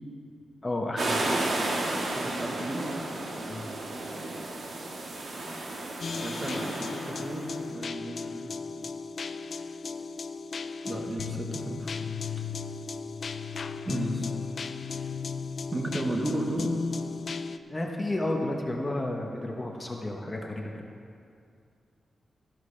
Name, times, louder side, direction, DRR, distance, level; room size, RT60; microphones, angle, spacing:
voice 1, 0.6-1.3 3.5-3.7 17.7-20.6, left 1 dB, 20° left, 0 dB, 0.9 m, -31 dB
sound 1, 1.0-7.5, right 2 dB, 60° right, 1.6 m, -32 dB
voice 2, 2.2-2.9 6.2-8.6 10.9-11.9 13.8-14.3 15.7-16.8, right 1 dB, 20° right, 1 dB, 1.1 m, -33 dB
sound 2, 6.0-17.6, left 5 dB, 50° left, 0.3 m, -35 dB
13.5 x 11.5 x 3.3 m, 2.4 s
wide cardioid pair, 150°, 0 cm